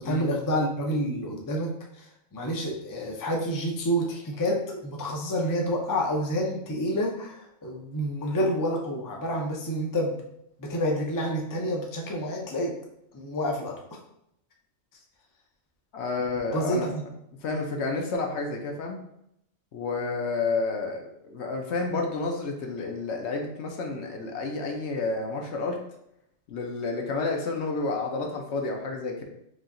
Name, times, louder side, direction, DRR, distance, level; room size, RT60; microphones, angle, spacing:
voice 1, 0.0-10.2 10.6-12.8 13.1-14.0 16.5-17.0, equal, 25° left, 0 dB, 0.4 m, -28 dB
voice 2, 15.9-16.9 17.4-19.0 19.7-25.8 26.5-29.2, left 3 dB, 70° left, 2 dB, 1.0 m, -30 dB
4.8 x 2.8 x 2.6 m, 0.77 s
omnidirectional pair, 1.2 m